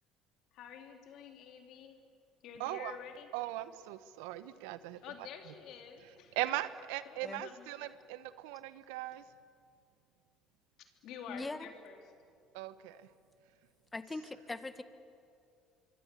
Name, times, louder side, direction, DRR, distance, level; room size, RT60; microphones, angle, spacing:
voice 1, 0.5-2.0 2.4-3.3 5.0-6.4 7.1-7.9 10.8-12.0, left 7 dB, 65° left, 3.5 m, -49 dB
voice 2, 2.6-3.0 3.3-5.0 6.3-9.2 12.5-13.1, right 15 dB, 80° right, 1.1 m, -39 dB
voice 3, 11.3-11.6 13.9-14.8, left 2 dB, 20° left, 1.7 m, -40 dB
25.5 x 24.0 x 8.5 m
hypercardioid pair, 70°, 0 cm